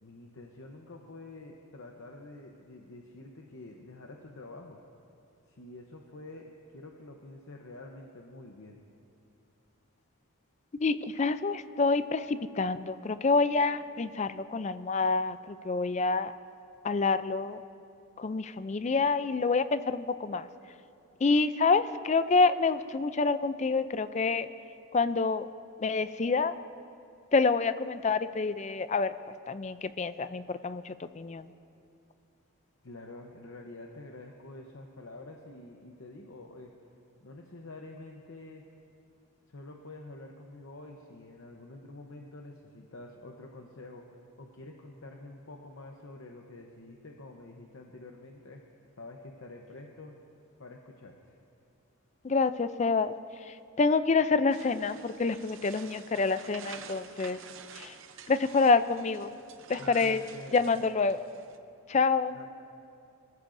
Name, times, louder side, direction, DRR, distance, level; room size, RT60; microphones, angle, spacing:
voice 1, 0.0-4.8 5.5-8.8 32.8-36.7 37.2-38.6 39.5-48.6 49.0-50.1 50.6-51.4 59.8-60.9 62.3-62.5, left 2 dB, 65° left, 1 dB, 0.8 m, -47 dB
voice 2, 10.8-16.3 16.8-17.6 18.2-20.5 21.2-24.5 24.9-25.5 25.8-26.6 27.3-29.1 29.5-31.5 52.2-53.1 53.4-57.4 57.7-58.0 58.3-59.4 59.7-60.2 60.5-61.2 61.9-62.4, left 4 dB, 30° left, 12 dB, 0.3 m, -27 dB
sound 1, 54.5-61.6, right 7 dB, 60° right, 0.6 m, -49 dB
23.0 x 14.0 x 2.6 m, 2.5 s
head